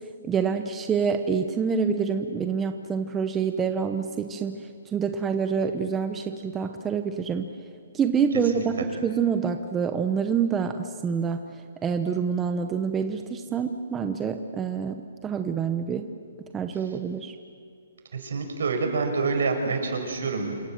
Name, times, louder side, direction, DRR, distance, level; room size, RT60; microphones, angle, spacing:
voice 1, 0.2-7.5 7.9-16.1 16.5-17.3, right 6 dB, 10° right, 7 dB, 0.9 m, -27 dB
voice 2, 18.1-20.5, right 4 dB, 70° right, 5 dB, 5.6 m, -27 dB
27.5 x 26.0 x 7.6 m, 2.3 s
hypercardioid pair, 165°, 0 cm